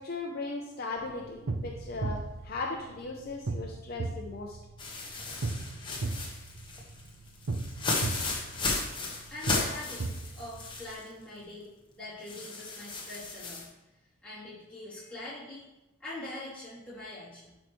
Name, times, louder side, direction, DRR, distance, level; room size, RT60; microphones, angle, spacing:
voice 1, 0.0-4.6, left 3 dB, 45° left, 1 dB, 0.6 m, -37 dB
sound 1, 0.9-3.3, equal, 35° right, 1.3 m, -51 dB
sound 2, 1.0-10.9, right 3 dB, 80° right, 0.6 m, -37 dB
sound 3, 4.8-11.0 11.4-11.5 12.3-13.6, left 3 dB, 20° left, 1.0 m, -35 dB
voice 2, 9.3-10.0 10.3-11.7 12.0-14.0 14.2-15.6 16.0-17.5, left 1 dB, 5° left, -11 dB, 2.8 m, -43 dB
11.0 x 4.5 x 3.1 m, 0.99 s
head